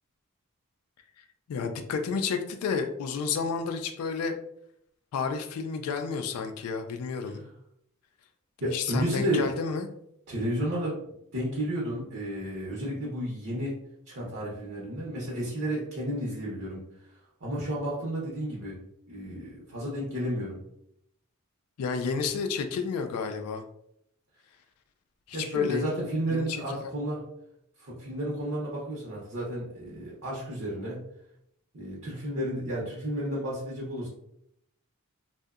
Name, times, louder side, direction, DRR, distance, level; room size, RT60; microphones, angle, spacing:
voice 1, 1.5-4.3 5.1-7.5 8.7-9.9 21.8-23.6 25.3-25.9 26.3-26.9, left 5 dB, 85° left, 6 dB, 0.3 m, -31 dB
voice 2, 8.6-9.5 10.3-11.0 11.3-13.8 14.1-16.8 17.4-18.8 19.1-20.6 25.3-27.2 27.8-31.0 31.7-34.1, right 1 dB, 60° right, -5 dB, 0.7 m, -32 dB
2.6 x 2.1 x 2.3 m, 0.75 s
head